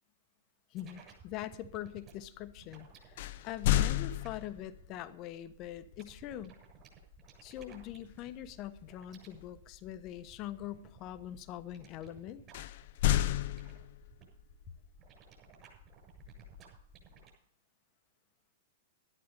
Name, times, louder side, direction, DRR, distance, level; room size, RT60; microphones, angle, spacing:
voice 1, 0.7-6.5 7.4-12.4, left 12 dB, 40° left, 12 dB, 1.1 m, -43 dB
sound 1, 0.8-17.3, right 3 dB, 30° right, 7.5 m, -57 dB
sound 2, 3.2-4.8 7.6-7.9 8.3-8.5 12.5-14.2, left 13 dB, 55° left, 0.7 m, -31 dB
13.0 x 11.5 x 5.3 m, 0.65 s
hypercardioid pair, 105°, 0 cm